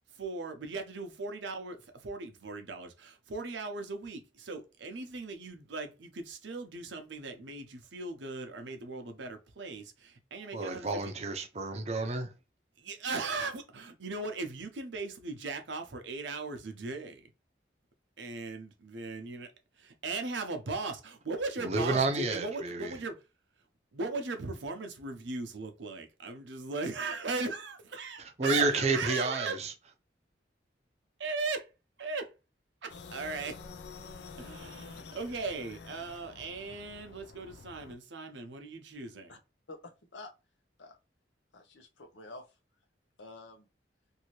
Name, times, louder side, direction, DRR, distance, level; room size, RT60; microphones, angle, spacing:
voice 1, 0.1-11.1 12.8-17.3 18.2-19.5 20.0-23.2 23.9-29.6 31.2-31.7 32.0-32.3 32.8-33.6 34.4-39.4, right 3 dB, 80° right, 0.7 m, -38 dB
voice 2, 10.4-12.3 21.6-22.9 28.4-29.7, right 3 dB, 35° right, 0.5 m, -30 dB
sound 1, 32.9-38.0, left 4 dB, 65° left, 0.4 m, -48 dB
voice 3, 39.7-40.3 40.8-41.0 41.5-42.6 43.2-43.7, left 2 dB, 85° left, 0.8 m, -48 dB
2.7 x 2.7 x 3.0 m
head